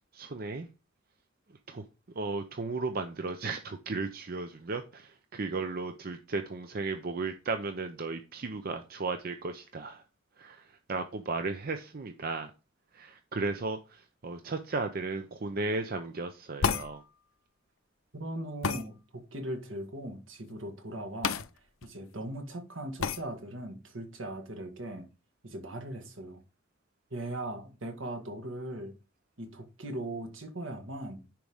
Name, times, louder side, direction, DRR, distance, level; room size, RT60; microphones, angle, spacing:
voice 1, 0.1-0.7 1.7-1.8 2.2-10.0 10.4-12.5 12.9-17.0, right 3 dB, 45° right, 0.6 m, -35 dB
sound 1, 16.6-16.9 18.6-18.8 21.2-21.5 21.8-21.9 23.0-23.2, left 6 dB, 85° left, 0.6 m, -29 dB
voice 2, 18.1-21.4 21.8-25.1 25.4-26.4 27.1-29.0 29.4-31.3, right 1 dB, 70° right, 1.7 m, -39 dB
10.5 x 4.7 x 3.6 m
head